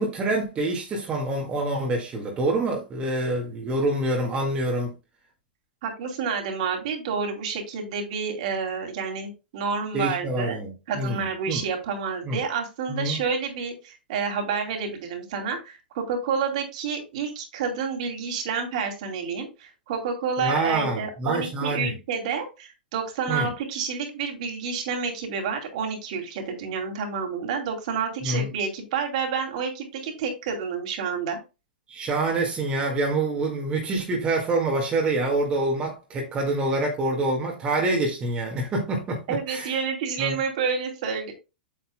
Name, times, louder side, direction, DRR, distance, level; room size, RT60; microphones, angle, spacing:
voice 1, 0.0-4.9 9.9-11.6 12.2-12.4 12.9-13.2 20.4-21.9 23.3-23.5 28.2-28.5 31.9-39.8 40.2-40.4, right 2 dB, 20° right, 1.8 m, -26 dB
voice 2, 5.8-10.6 10.9-31.4 39.3-41.3, right 6 dB, 45° right, 2.7 m, -29 dB
8.6 x 7.8 x 2.2 m
figure-of-eight pair, 100°, 5 cm